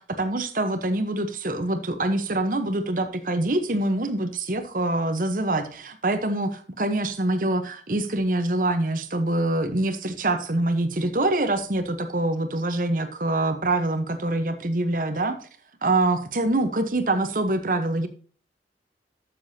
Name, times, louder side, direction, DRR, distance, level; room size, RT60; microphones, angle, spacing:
voice 1, 0.0-15.4 15.8-18.1, right 2 dB, 50° right, 9 dB, 1.0 m, -25 dB
12.5 x 7.0 x 2.8 m, 0.41 s
head